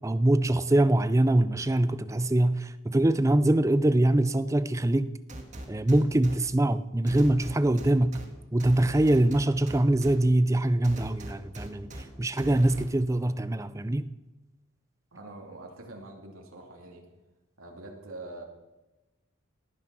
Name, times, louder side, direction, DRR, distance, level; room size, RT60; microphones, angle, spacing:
voice 1, 0.0-5.1 5.7-8.2 8.5-14.1, right 1 dB, 15° right, 0.4 m, -23 dB
sound 1, 5.3-6.4 7.1-8.2 8.6-10.1 10.8-12.0 12.4-12.8, right 1 dB, 35° right, 2.0 m, -40 dB
voice 2, 15.1-17.0 17.6-18.4, right 2 dB, 90° right, 2.7 m, -44 dB
18.5 x 9.4 x 6.2 m
head